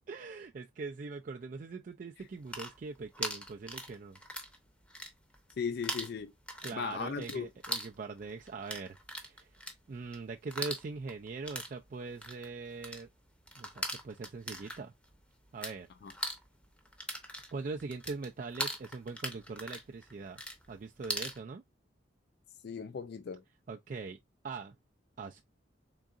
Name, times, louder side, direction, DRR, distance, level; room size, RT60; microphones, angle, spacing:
voice 1, 0.1-4.2 6.6-9.6 9.9-13.1 13.6-14.9 15.5-15.9 17.5-20.4 20.7-21.6 23.7-24.2 24.4-24.8 25.2-25.4, right 4 dB, 45° right, 0.3 m, -42 dB
sound 1, 2.3-4.6 4.8-5.5 5.8-15.7 16.0-21.4, equal, 5° left, 0.7 m, -40 dB
voice 2, 5.6-6.3 6.7-7.5 16.0-16.1 22.6-23.4, left 6 dB, 55° left, 0.3 m, -37 dB
3.8 x 3.6 x 2.4 m
head